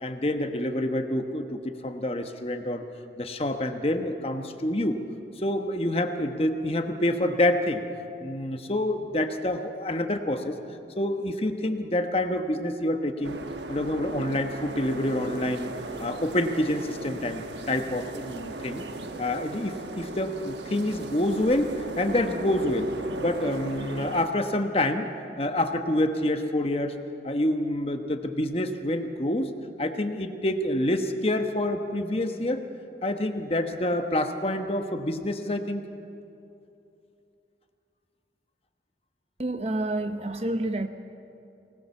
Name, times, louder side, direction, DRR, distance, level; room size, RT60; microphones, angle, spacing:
voice 1, 0.0-2.8 3.2-5.0 5.4-7.8 8.2-10.5 11.0-13.4 13.7-15.7 16.0-18.8 19.2-22.9 23.2-25.1 25.4-27.0 27.2-29.5 29.8-32.6 33.0-35.8, left 1 dB, 35° left, 1.1 m, -27 dB
sound 1, 13.2-24.3, right 2 dB, 85° right, 1.2 m, -37 dB
voice 2, 39.4-40.9, right 1 dB, 35° right, 0.8 m, -28 dB
24.0 x 19.0 x 7.1 m
head